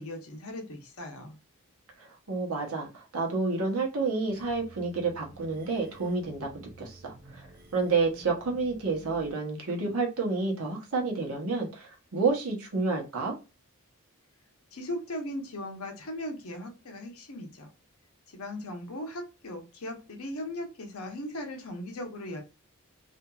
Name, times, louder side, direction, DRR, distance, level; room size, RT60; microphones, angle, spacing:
voice 1, 0.0-1.4 14.7-17.7 18.3-22.4, left 1 dB, 70° left, 4 dB, 0.8 m, -38 dB
voice 2, 2.0-6.5 6.8-7.5 7.7-13.3, right 4 dB, 70° right, 1 dB, 0.9 m, -29 dB
sound 1, 4.3-9.3, right 1 dB, 40° right, 0.6 m, -52 dB
2.7 x 2.5 x 2.3 m, 0.29 s
head